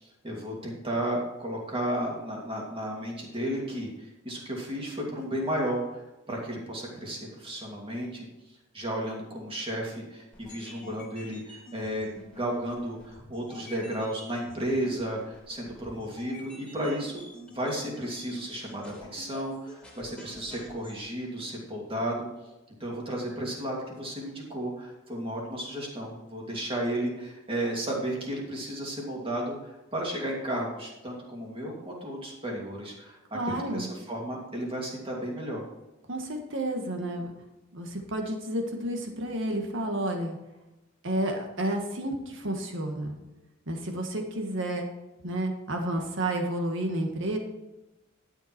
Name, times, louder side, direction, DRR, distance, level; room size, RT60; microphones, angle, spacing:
voice 1, 0.0-8.3 8.7-22.3 22.8-35.6, right 1 dB, 25° right, -1 dB, 2.8 m, -33 dB
sound 1, 10.3-21.0, equal, 5° left, 2.8 m, -49 dB
voice 2, 33.3-33.9 36.1-37.3 37.7-40.4 41.0-43.2 43.7-44.9 45.2-47.4, right 1 dB, 65° right, 3 dB, 1.8 m, -31 dB
12.0 x 7.3 x 4.5 m, 1.0 s
head